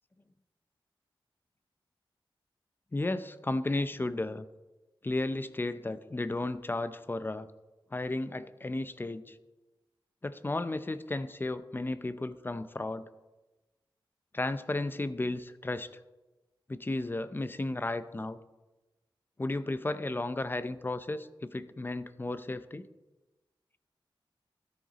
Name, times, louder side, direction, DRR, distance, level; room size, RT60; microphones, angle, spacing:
voice 1, 2.9-4.5 5.0-7.5 7.9-9.4 10.2-13.1 14.3-15.9 16.7-18.4 19.4-22.9, left 2 dB, 25° left, 13 dB, 0.5 m, -34 dB
13.0 x 9.9 x 4.0 m, 1.1 s
wide cardioid pair, 100°, 9 cm